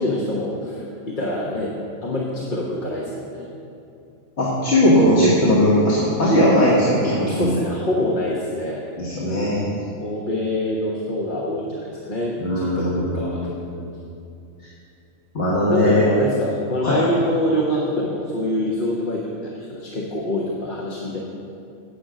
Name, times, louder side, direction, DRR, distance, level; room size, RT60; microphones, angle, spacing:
voice 1, 0.0-1.8 2.0-3.5 7.2-8.8 9.2-9.6 10.0-13.5 15.7-21.2, left 1 dB, 40° left, -3 dB, 1.1 m, -25 dB
voice 2, 4.4-7.6 9.0-9.8 12.4-13.8 15.3-16.0 16.8-17.1, equal, 55° left, -6 dB, 1.9 m, -19 dB
12.0 x 8.6 x 5.1 m, 2.6 s
omnidirectional pair, 1.4 m